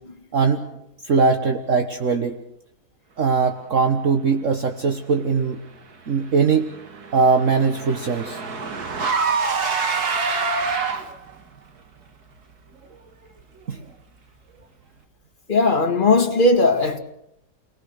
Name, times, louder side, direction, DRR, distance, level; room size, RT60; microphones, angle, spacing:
voice 1, 0.3-0.7 1.0-2.4 3.2-5.6 6.1-6.7 7.1-8.4 13.7-13.8, right 5 dB, 55° right, 1.6 m, -20 dB
Car / Engine, 6.3-11.3, right 4 dB, 75° right, 2.3 m, -26 dB
voice 2, 15.5-17.0, left 2 dB, 30° left, 2.3 m, -18 dB
29.5 x 19.5 x 6.6 m
omnidirectional pair, 1.7 m